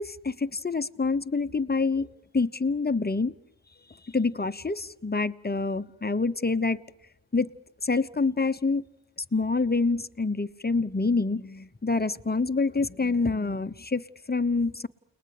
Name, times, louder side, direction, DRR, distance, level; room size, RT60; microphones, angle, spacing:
voice 1, 0.0-2.1 2.3-3.3 4.0-6.8 7.3-7.5 7.8-8.8 9.3-14.9, left 3 dB, 20° left, 1.0 m, -26 dB
30.0 x 20.0 x 6.7 m
cardioid pair, 50°, 48 cm